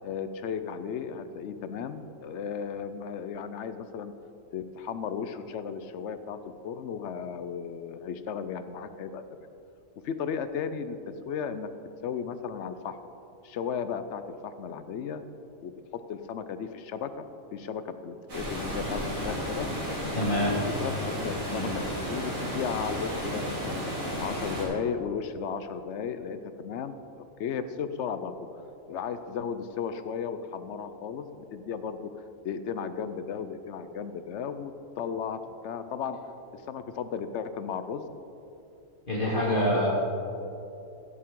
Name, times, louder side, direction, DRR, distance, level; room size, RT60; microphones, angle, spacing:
voice 1, 0.0-4.1 4.5-9.2 10.0-11.0 11.3-11.7 12.0-13.0 13.4-15.2 15.6-17.2 17.5-19.7 20.2-20.4 20.8-23.8 24.2-27.0 27.4-28.4 28.9-32.1 32.4-34.7 35.0-36.2 36.5-38.0 39.2-39.9, left 7 dB, 65° left, 11 dB, 0.8 m, -35 dB
Water, 18.3-24.6, equal, 80° right, 3.2 m, -33 dB
voice 2, 20.1-20.6 21.5-21.7 39.1-39.9, left 1 dB, 40° left, -7 dB, 2.3 m, -26 dB
15.5 x 8.5 x 3.8 m, 2.8 s
omnidirectional pair, 1.4 m